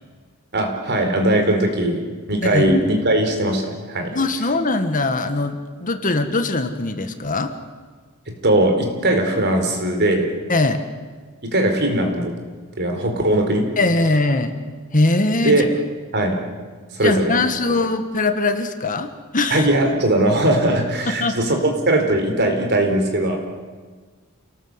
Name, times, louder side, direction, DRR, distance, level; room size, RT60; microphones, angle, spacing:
voice 1, 0.5-2.0 2.3-4.1 8.3-10.3 11.4-12.3 12.8-13.7 15.4-15.7 16.1-16.4 16.9-17.4 19.5-23.4, right 1 dB, 50° right, 4 dB, 4.4 m, -19 dB
voice 2, 4.1-7.5 10.5-10.8 13.8-14.5 14.9-15.6 17.0-19.7 21.2-21.4, left 2 dB, 40° left, 8 dB, 1.6 m, -21 dB
28.0 x 18.5 x 8.1 m, 1.5 s
head